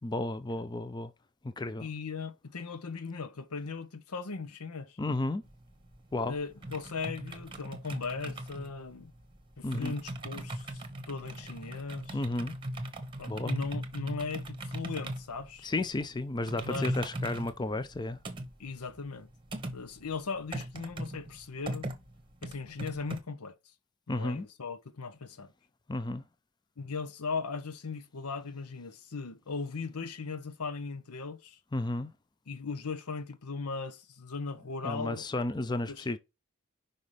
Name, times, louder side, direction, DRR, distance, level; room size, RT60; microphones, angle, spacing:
voice 1, 0.0-1.1 1.6-1.9 5.0-5.4 6.1-6.3 9.6-10.0 12.1-12.5 13.3-13.5 15.6-18.2 24.1-24.4 25.9-26.2 31.7-32.1 34.8-36.2, left 2 dB, 20° left, 0.4 m, -32 dB
voice 2, 1.8-5.0 6.2-9.1 9.6-12.2 13.2-15.7 16.6-17.0 18.6-19.3 19.7-21.9 22.4-23.5 24.1-25.5 26.8-31.6 32.5-35.3 35.9-36.2, left 4 dB, 85° left, 0.8 m, -38 dB
sound 1, 5.4-23.2, right 1 dB, 20° right, 0.9 m, -40 dB
5.5 x 5.2 x 3.2 m
head